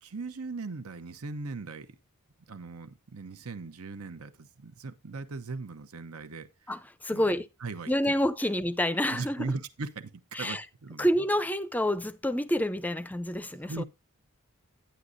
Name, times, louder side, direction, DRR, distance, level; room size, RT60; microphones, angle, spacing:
voice 1, 0.0-1.9 2.5-6.7 7.1-7.2 7.6-8.2 9.1-11.1 13.6-13.8, right 3 dB, 85° right, 0.9 m, -39 dB
voice 2, 6.7-7.5 7.9-9.5 10.3-10.6 11.0-13.8, equal, 5° left, 0.4 m, -28 dB
11.5 x 9.5 x 2.6 m
head